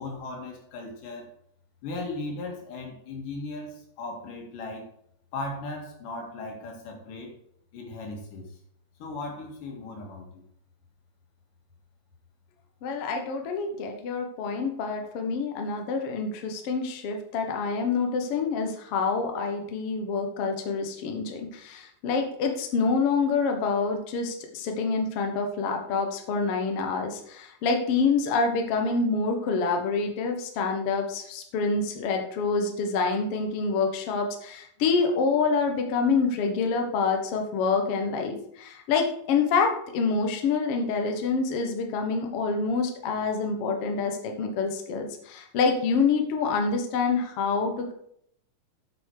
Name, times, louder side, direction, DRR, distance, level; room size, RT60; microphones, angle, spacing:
voice 1, 0.0-1.3 1.8-4.9 5.3-7.4 7.7-8.6 9.0-10.4, left 2 dB, 90° left, 1 dB, 3.5 m, -37 dB
voice 2, 12.8-47.9, left 4 dB, 60° left, 3 dB, 1.8 m, -27 dB
8.4 x 6.9 x 4.8 m, 0.69 s
omnidirectional pair, 3.7 m